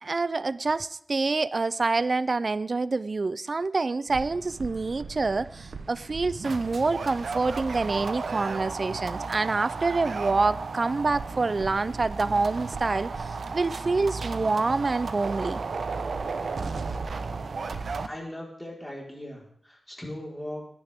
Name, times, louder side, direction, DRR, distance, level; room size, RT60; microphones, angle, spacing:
voice 1, 0.0-15.6, right 3 dB, 50° right, 17 dB, 0.5 m, -27 dB
sound 1, 4.1-18.1, right 4 dB, 75° right, 0.9 m, -34 dB
voice 2, 18.0-20.7, left 1 dB, 10° left, -2 dB, 4.4 m, -39 dB
21.0 x 10.5 x 3.6 m, 0.67 s
cardioid pair, 55°, 0 cm